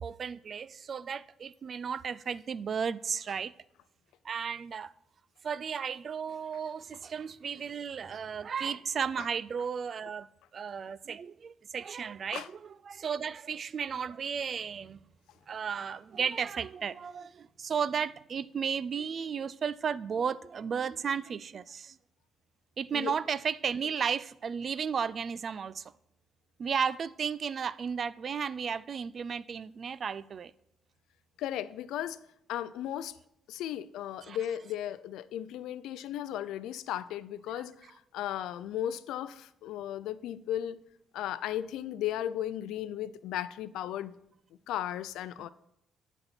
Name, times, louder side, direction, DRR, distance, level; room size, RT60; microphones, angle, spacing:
voice 1, 0.0-3.5 4.2-4.9 5.4-10.3 10.5-12.4 12.9-15.0 15.5-22.0 22.8-25.9 26.6-30.5 34.2-34.4, right 6 dB, 50° right, 0.3 m, -34 dB
voice 2, 31.4-32.2 32.5-33.1 33.5-37.7 38.1-40.8 41.1-44.1 44.7-45.5, left 11 dB, 90° left, 0.4 m, -35 dB
10.0 x 4.1 x 5.8 m
cardioid pair, 90°, 0 cm